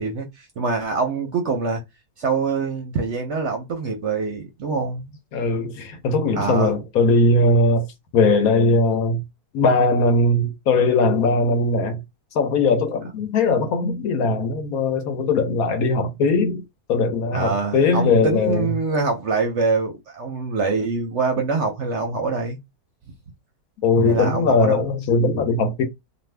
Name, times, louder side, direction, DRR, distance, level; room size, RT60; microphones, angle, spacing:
voice 1, 0.0-1.8 2.2-5.2 6.3-6.7 17.3-22.6 24.1-24.9, right 4 dB, 60° right, 0.8 m, -24 dB
voice 2, 5.3-7.9 8.1-9.2 9.5-12.0 12.3-16.6 16.9-18.7 23.8-25.8, left 3 dB, 70° left, 1.1 m, -19 dB
2.6 x 2.6 x 3.2 m
omnidirectional pair, 1.7 m